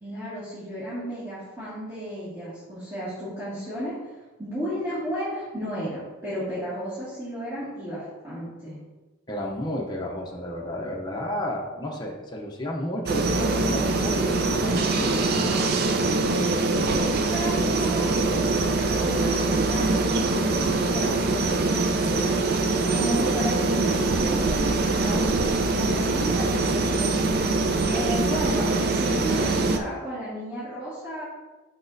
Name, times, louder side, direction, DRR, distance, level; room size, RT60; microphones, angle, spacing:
voice 1, 0.0-4.0 4.4-8.8 16.8-22.5 22.9-31.2, equal, 20° right, -13 dB, 2.0 m, -33 dB
voice 2, 9.3-15.7, left 1 dB, 20° left, -1 dB, 0.6 m, -32 dB
sound 1, 13.1-29.8, right 3 dB, 50° right, 0.4 m, -23 dB
6.0 x 5.9 x 2.6 m, 1.2 s
head